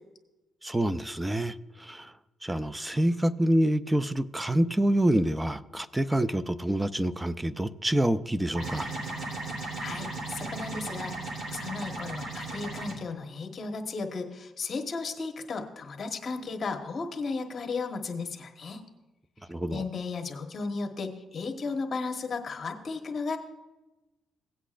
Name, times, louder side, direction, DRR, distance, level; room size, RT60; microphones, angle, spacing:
voice 1, 0.6-2.1 2.4-8.9 19.5-19.8, right 1 dB, 10° right, 0.5 m, -27 dB
sound 1, 8.5-12.9, right 3 dB, 55° right, 3.2 m, -36 dB
voice 2, 9.8-11.1 11.5-18.8 19.7-23.4, left 4 dB, 45° left, 1.2 m, -35 dB
17.0 x 8.2 x 2.5 m
cardioid pair, 90°, 0 cm